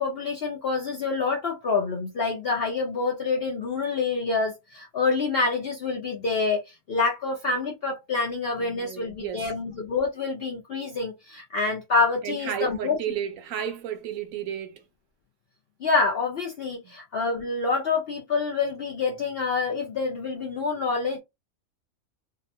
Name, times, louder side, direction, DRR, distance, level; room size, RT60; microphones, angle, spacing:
voice 1, 0.0-13.0 15.8-21.2, left 4 dB, 60° left, 0.6 m, -27 dB
voice 2, 8.6-9.5 12.2-14.8 16.8-16.9, right 9 dB, 75° right, 0.9 m, -33 dB
2.6 x 2.1 x 2.6 m
omnidirectional pair, 1.5 m